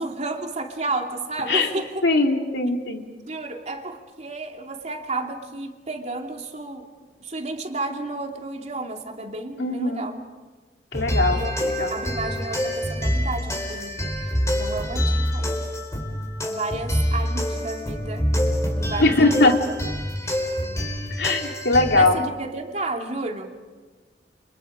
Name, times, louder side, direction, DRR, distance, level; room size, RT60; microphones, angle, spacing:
voice 1, 0.0-2.1 3.3-6.9 7.2-10.1 11.3-11.5 11.9-14.1 14.6-15.7 16.5-18.3 18.7-19.6 20.2-20.4 21.9-23.6, right 2 dB, 40° right, 2 dB, 2.9 m, -32 dB
voice 2, 2.0-3.0 9.6-10.0 10.9-11.4 11.8-11.9 19.0-19.5 21.2-22.2, left 2 dB, 85° left, 3 dB, 2.8 m, -20 dB
sound 1, 10.9-22.1, equal, 15° left, 4.3 m, -26 dB
30.0 x 28.0 x 5.2 m, 1.3 s
head